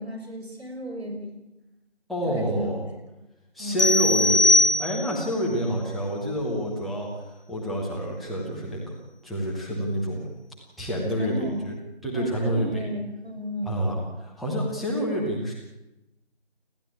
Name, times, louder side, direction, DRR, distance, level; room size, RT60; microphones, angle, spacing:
voice 1, 0.0-1.3 2.2-2.7 3.6-4.0 5.4-5.6 11.2-11.6 12.1-13.8, equal, 65° right, 4 dB, 6.3 m, -35 dB
voice 2, 2.1-2.8 3.5-7.1 7.5-8.8 9.2-10.3 10.8-11.7 12.0-12.9 13.6-15.5, equal, ahead, -5 dB, 1.0 m, -28 dB
sound 1, 3.8-5.3, left 2 dB, 80° left, 1.2 m, -20 dB
29.0 x 12.0 x 8.8 m, 0.97 s
figure-of-eight pair, 170°, 33 cm